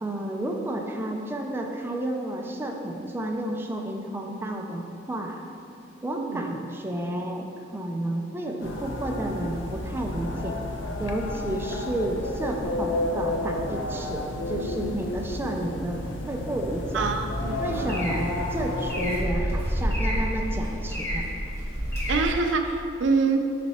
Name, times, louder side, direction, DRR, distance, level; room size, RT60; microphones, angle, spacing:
voice 1, 0.0-5.4 6.0-10.6 11.0-17.1 17.6-21.3, right 1 dB, 10° right, 1 dB, 0.5 m, -31 dB
voice 2, 6.1-6.5 16.9-18.1 22.1-23.5, right 4 dB, 70° right, 5 dB, 0.5 m, -26 dB
sound 1, 8.6-19.2, left 1 dB, 80° left, 0.6 m, -31 dB
sound 2, 17.4-22.3, equal, 15° left, 1.4 m, -29 dB
5.8 x 4.2 x 4.1 m, 2.5 s
head